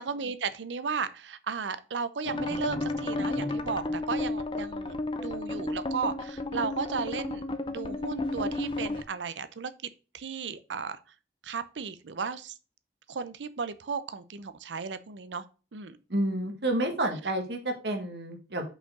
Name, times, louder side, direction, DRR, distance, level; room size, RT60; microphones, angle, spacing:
voice 1, 0.0-9.7 10.1-11.0 11.4-12.5 13.1-15.4 15.7-16.0, right 5 dB, 85° right, 0.6 m, -35 dB
sound 1, 2.2-9.0, left 2 dB, 30° left, 0.6 m, -32 dB
voice 2, 16.1-18.6, right 1 dB, 70° right, 1.6 m, -29 dB
5.6 x 4.5 x 6.0 m
head